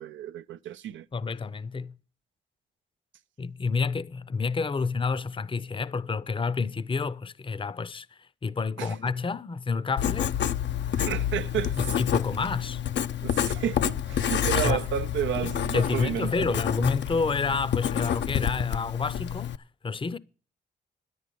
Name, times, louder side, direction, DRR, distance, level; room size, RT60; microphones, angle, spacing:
voice 1, 0.0-1.0 8.8-9.0 10.9-11.8 13.2-16.6, right 11 dB, 90° right, 0.5 m, -32 dB
voice 2, 1.1-2.0 3.4-8.1 8.4-10.4 11.8-12.8 14.5-14.8 15.7-19.5 19.8-20.2, left 4 dB, 25° left, 0.6 m, -29 dB
Writing, 10.0-19.6, left 10 dB, 70° left, 0.5 m, -28 dB
10.0 x 9.5 x 6.7 m
cardioid pair, 55°, 19 cm